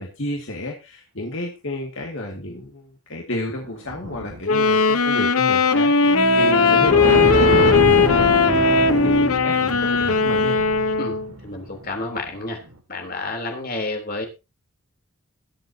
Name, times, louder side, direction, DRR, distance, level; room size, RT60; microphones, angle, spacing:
voice 1, 0.0-10.6, left 1 dB, 60° left, 0 dB, 2.4 m, -31 dB
sound 1, 3.6-4.8 6.4-6.5 6.7-12.3 12.6-12.7, right 1 dB, 85° right, 2.5 m, -27 dB
Wind instrument woodwind instrument, 4.4-11.3, left 4 dB, 85° left, 1.1 m, -18 dB
Bowed string instrument, 5.9-11.3, right 1 dB, 10° right, 0.6 m, -29 dB
voice 2, 11.4-12.6 12.9-14.3, left 2 dB, 40° left, 2 dB, 3.7 m, -30 dB
22.0 x 7.9 x 2.9 m, 0.28 s
head